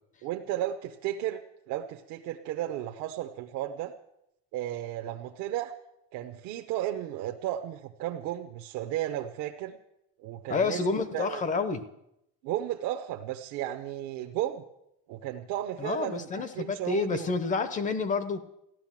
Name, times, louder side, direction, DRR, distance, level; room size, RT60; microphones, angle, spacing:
voice 1, 0.2-1.4 1.7-3.9 4.5-5.7 6.1-9.8 10.2-10.8 11.1-11.4 12.4-14.6 15.1-16.3 16.5-17.3, right 12 dB, 55° right, 2 dB, 0.9 m, -34 dB
voice 2, 10.5-11.9 15.8-18.4, left 4 dB, 20° left, 13 dB, 0.7 m, -29 dB
15.0 x 11.5 x 7.4 m, 0.82 s
cardioid pair, 170°, 37 cm